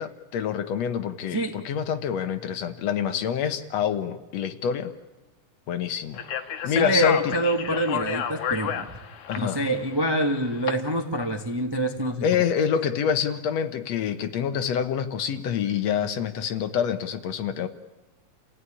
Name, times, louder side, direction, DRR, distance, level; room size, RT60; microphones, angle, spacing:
voice 1, 0.0-4.9 5.7-6.2 6.6-7.3 9.3-9.6 12.2-17.7, left 8 dB, 65° left, 9 dB, 2.2 m, -27 dB
Speech, 6.1-10.7, left 8 dB, 85° left, 2.7 m, -31 dB
voice 2, 6.6-8.8 9.4-12.3, equal, 15° right, 4 dB, 0.8 m, -26 dB
29.5 x 16.0 x 10.0 m, 1.1 s
omnidirectional pair, 3.3 m